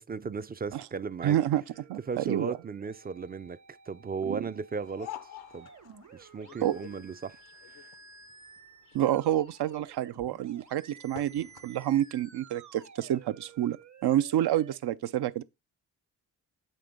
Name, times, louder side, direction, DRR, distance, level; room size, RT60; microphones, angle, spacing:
voice 1, 0.0-1.4 2.1-3.6 3.9-5.1 5.5-5.7 6.1-7.4 7.7-7.9, right 5 dB, 25° right, 0.4 m, -36 dB
voice 2, 1.2-1.6 1.9-2.6 4.3-4.4 6.6-6.8 8.9-15.4, right 12 dB, 65° right, 0.6 m, -28 dB
sound 1, 1.7-14.8, right 5 dB, 40° right, 1.0 m, -54 dB
sound 2, 4.7-12.0, left 12 dB, 80° left, 0.7 m, -49 dB
7.8 x 3.4 x 5.1 m
supercardioid pair, 45°, 42 cm